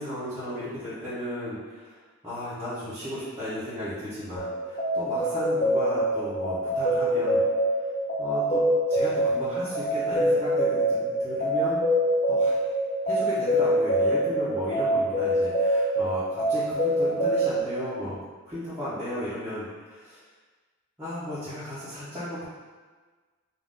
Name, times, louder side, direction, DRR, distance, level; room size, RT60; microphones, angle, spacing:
voice 1, 0.0-2.0 2.2-7.4 7.8-7.9 8.2-8.6 8.9-11.9 12.3-12.7 13.0-20.2 21.0-22.4, equal, 10° right, -16 dB, 1.0 m, -35 dB
sound 1, 4.4-17.6, right 1 dB, 35° left, 0.7 m, -25 dB
3.9 x 2.6 x 3.7 m, 1.4 s
head